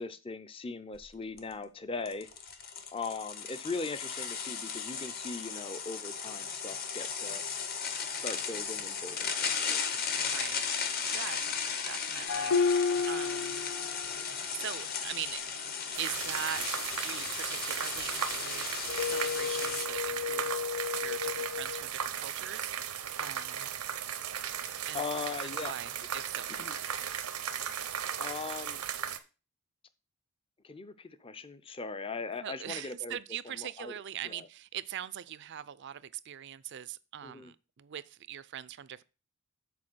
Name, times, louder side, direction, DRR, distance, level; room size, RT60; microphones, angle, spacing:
voice 1, 0.0-2.3 2.9-7.4 8.2-9.8 24.9-25.7 26.6-26.8 28.2-28.8 30.6-33.2 33.6-33.9 34.2-34.5 37.2-37.5, left 4 dB, 25° left, 0.5 m, -39 dB
sound 1, 1.0-1.1 1.4-1.5 2.1-19.9, left 6 dB, 40° left, 0.9 m, -36 dB
voice 2, 10.1-10.6 11.1-13.7 14.1-15.4 16.0-18.7 19.0-20.5 20.9-23.7 24.9-25.0 25.4-26.5 31.7-31.8 32.4-39.0, right 10 dB, 50° right, 0.4 m, -42 dB
sound 2, 12.3-14.4 18.9-21.9, left 5 dB, 80° left, 0.5 m, -32 dB
sound 3, 15.9-29.2, right 9 dB, 90° right, 0.8 m, -36 dB
7.5 x 4.5 x 6.1 m
head